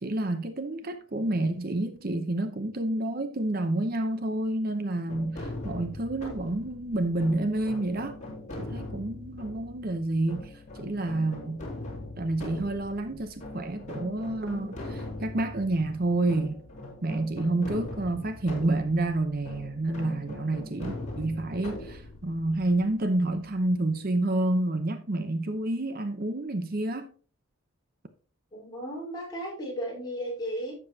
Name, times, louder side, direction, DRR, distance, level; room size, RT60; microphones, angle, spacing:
voice 1, 0.0-8.2 8.6-11.7 12.2-16.6 17.0-27.1, right 2 dB, 45° right, 0.7 m, -29 dB
sound 1, 5.1-23.8, left 2 dB, 35° left, 3.2 m, -41 dB
voice 2, 28.5-30.7, equal, 20° left, 4.3 m, -35 dB
11.5 x 7.7 x 2.8 m
head